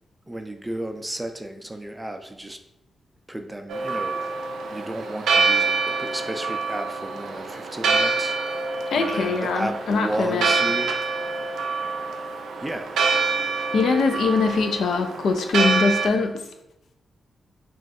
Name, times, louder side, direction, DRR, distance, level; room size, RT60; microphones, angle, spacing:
voice 1, 0.3-2.6 3.3-4.2 4.7-8.4 9.0-10.9 12.6-12.9, right 1 dB, 15° right, 6 dB, 0.4 m, -33 dB
Church bell, 3.7-16.1, right 4 dB, 85° right, 0.3 m, -26 dB
voice 2, 8.9-10.5 13.7-16.5, left 4 dB, 75° left, 6 dB, 0.3 m, -22 dB
2.5 x 2.3 x 4.0 m, 0.85 s
cardioid pair, 70°, 0 cm